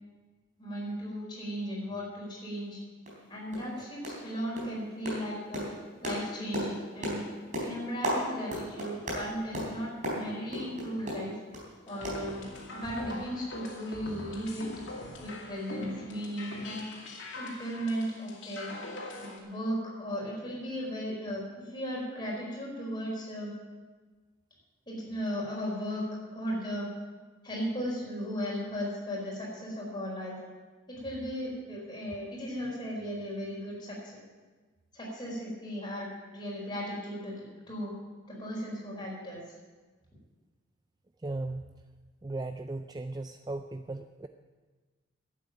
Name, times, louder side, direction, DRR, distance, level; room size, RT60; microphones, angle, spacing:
voice 1, 0.6-2.8 3.3-5.7 6.0-7.2 7.6-11.4 11.9-12.4 12.7-14.7 15.2-16.8 17.3-18.7 19.2-23.5 24.9-26.1 26.3-26.9 27.4-30.4 30.9-34.2 34.9-37.9 38.3-39.4, equal, 20° left, -5 dB, 4.9 m, -36 dB
sound 1, 2.5-2.6 3.1-3.2 3.5-3.7 4.0-4.3 4.6-11.7 12.0-12.8 13.1-13.2 13.6-13.7, equal, 35° right, 4.0 m, -36 dB
sound 2, 11.9-19.4, left 2 dB, 65° left, 2.5 m, -42 dB
voice 2, 41.2-41.7 42.2-44.3, right 2 dB, 20° right, 7 dB, 0.3 m, -37 dB
11.5 x 8.5 x 9.1 m, 1.3 s
head